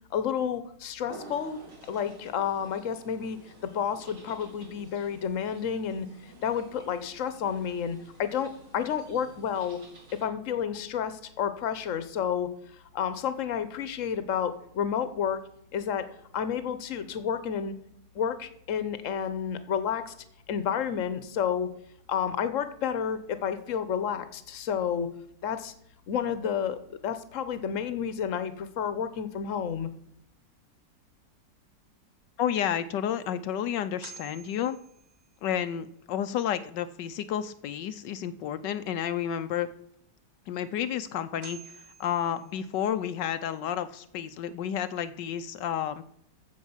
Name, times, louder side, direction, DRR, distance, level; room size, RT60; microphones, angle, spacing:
voice 1, 0.1-1.6 1.9-9.8 10.1-12.5 12.9-15.4 15.7-16.1 16.3-17.7 18.1-20.1 20.5-21.7 22.1-25.1 25.4-25.7 26.1-29.9, left 8 dB, 50° left, 12 dB, 1.3 m, -30 dB
sound 1, 1.1-10.2, right 2 dB, 75° right, 4.1 m, -51 dB
voice 2, 32.4-34.8 35.4-39.7 40.5-46.0, left 9 dB, 80° left, 11 dB, 1.3 m, -31 dB
sound 2, 33.2-33.3 34.0-35.6 40.7-40.8 41.4-43.1, right 6 dB, 55° right, 2.1 m, -50 dB
14.5 x 5.0 x 7.2 m, 0.73 s
omnidirectional pair, 1.9 m